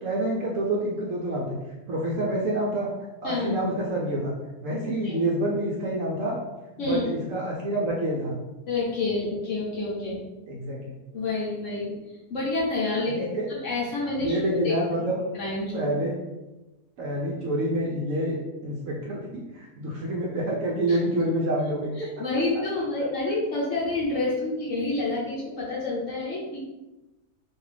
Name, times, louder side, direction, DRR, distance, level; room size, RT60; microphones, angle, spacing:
voice 1, 0.0-1.6 1.9-2.9 3.2-4.3 4.6-6.4 6.8-8.4 10.5-11.0 13.0-13.5 14.2-15.2 15.7-16.2 17.0-18.4 18.6-22.1, right 1 dB, 70° right, -3 dB, 0.8 m, -27 dB
voice 2, 3.2-3.6 5.0-5.2 6.8-7.0 8.7-10.2 11.1-11.9 12.3-14.4 14.6-14.7 15.3-15.9 20.9-21.0 22.0-26.6, left 2 dB, 60° left, -5 dB, 0.9 m, -28 dB
2.6 x 2.3 x 3.2 m, 1.0 s
omnidirectional pair, 1.7 m